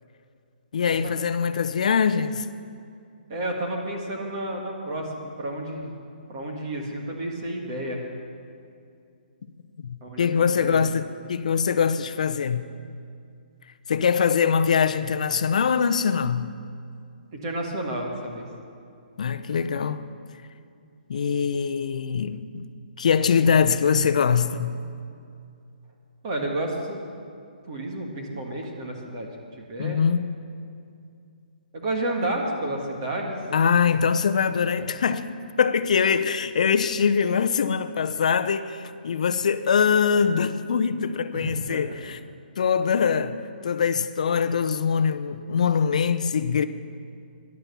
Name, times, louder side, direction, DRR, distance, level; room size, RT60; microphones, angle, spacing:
voice 1, 0.7-2.5 9.8-12.6 13.9-16.5 19.2-20.1 21.1-22.7 23.0-24.8 29.8-30.3 33.5-42.2 42.6-46.6, left 6 dB, 45° left, 0.6 m, -23 dB
voice 2, 3.3-5.9 6.3-8.0 10.0-10.9 17.3-18.5 26.2-27.0 27.7-29.3 29.6-30.0 31.7-33.4 34.8-34.9 41.3-41.8, right 1 dB, 25° right, 1.7 m, -31 dB
13.0 x 10.5 x 7.0 m
hypercardioid pair, 175°, 5 cm